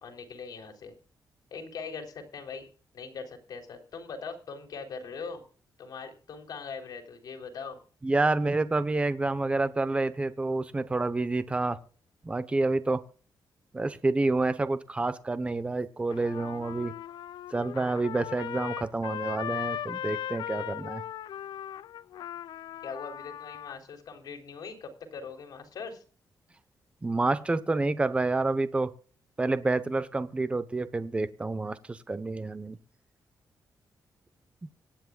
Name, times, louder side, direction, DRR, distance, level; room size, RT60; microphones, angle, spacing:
voice 1, 0.0-0.9 1.5-2.7 2.9-5.4 5.8-7.8 22.8-26.0, left 5 dB, 65° left, 5 dB, 3.8 m, -41 dB
voice 2, 8.0-11.8 12.2-13.0 13.7-16.9 17.5-21.0 27.0-28.9 29.4-32.8 34.6-34.7, right 2 dB, 15° right, 12 dB, 0.9 m, -28 dB
Trumpet, 16.1-23.7, left 10 dB, 85° left, 0.5 m, -38 dB
25.0 x 10.0 x 2.4 m, 0.40 s
wide cardioid pair, 155°, 7 cm